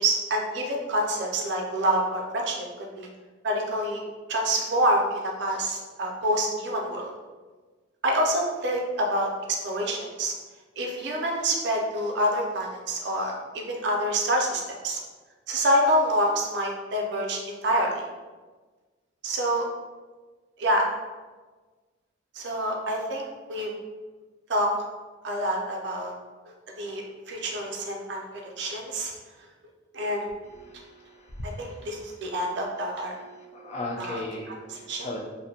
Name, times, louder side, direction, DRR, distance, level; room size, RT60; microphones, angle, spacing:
voice 1, 0.0-3.1 3.4-4.0 4.3-7.1 8.0-9.3 9.6-10.3 10.8-15.0 15.5-18.0 19.2-19.7 20.6-20.9 22.3-23.7 24.5-24.7 25.2-26.1 26.8-28.2 28.6-29.1 29.9-30.3 31.4-33.1 34.0-35.1, right 1 dB, 60° right, 0 dB, 0.4 m, -27 dB
voice 2, 30.6-31.1 33.3-35.2, left 2 dB, 35° left, -1 dB, 0.3 m, -36 dB
2.5 x 2.1 x 2.6 m, 1.3 s
head